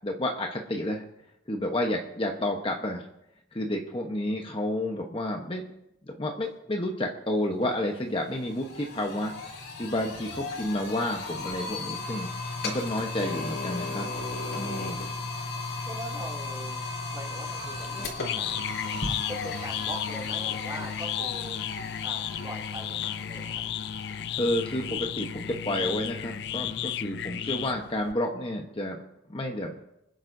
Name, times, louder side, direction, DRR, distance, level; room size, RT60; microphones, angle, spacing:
voice 1, 0.0-1.0 1.5-3.0 3.5-5.6 6.1-9.3 9.8-14.1 14.5-15.0 24.3-29.0 29.3-29.8, left 1 dB, 30° left, 2 dB, 1.0 m, -30 dB
voice 2, 6.3-6.8 10.3-10.4 14.9-23.6 27.1-27.4, right 1 dB, 20° right, -2 dB, 2.6 m, -43 dB
sound 1, 7.6-7.7 8.0-27.0, left 3 dB, 75° left, 4.3 m, -36 dB
sound 2, 17.8-28.1, left 10 dB, 60° left, 0.4 m, -33 dB
26.0 x 10.5 x 2.7 m, 0.84 s
head